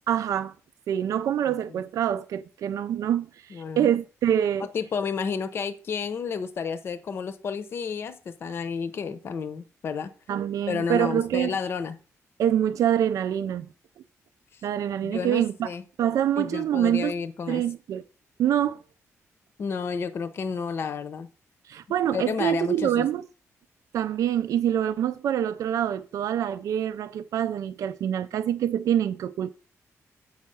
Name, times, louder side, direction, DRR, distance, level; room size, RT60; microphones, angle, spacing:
voice 1, 0.1-0.5 0.9-4.7 10.3-11.6 12.4-13.7 14.6-15.7 16.0-17.1 17.5-18.0 18.4-18.8 21.7-23.2 23.9-29.5, right 10 dB, 90° right, 0.4 m, -25 dB
voice 2, 1.5-1.8 3.5-3.9 4.6-10.1 10.7-12.0 14.5-14.6 15.0-15.8 16.4-17.6 19.6-21.3 22.1-23.1, left 6 dB, 45° left, 0.7 m, -31 dB
8.3 x 5.5 x 6.2 m
wide cardioid pair, 175°, 6 cm